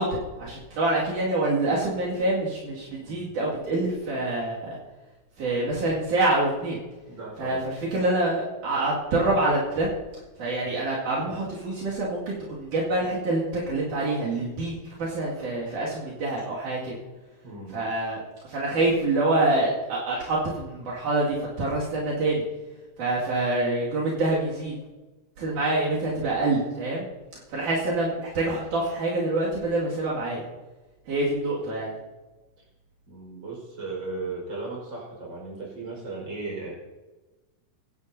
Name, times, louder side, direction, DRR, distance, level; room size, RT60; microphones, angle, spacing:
voice 1, 0.0-4.8 5.4-6.8 7.4-7.6 7.9-9.9 10.4-16.9 17.7-22.4 23.0-24.7 25.4-27.1 27.5-30.4 31.1-31.9, right 2 dB, 75° right, -6 dB, 3.7 m, -26 dB
voice 2, 7.1-7.6 17.4-17.8 33.1-36.7, right 3 dB, 35° right, -3 dB, 5.3 m, -36 dB
23.5 x 10.5 x 2.7 m, 1.2 s
omnidirectional pair, 3.6 m